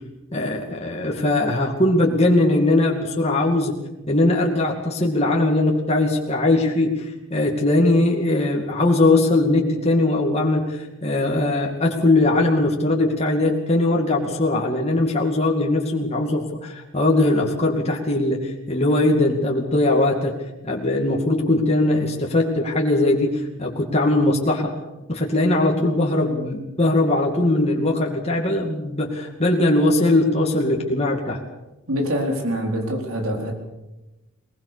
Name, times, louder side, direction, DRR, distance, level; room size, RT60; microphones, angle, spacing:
voice 1, 0.3-3.7 4.1-20.3 20.6-24.7 25.1-31.4, left 2 dB, 30° left, 0 dB, 2.4 m, -20 dB
voice 2, 31.9-33.5, equal, 85° right, 3 dB, 4.2 m, -24 dB
21.0 x 20.5 x 6.9 m, 1.0 s
head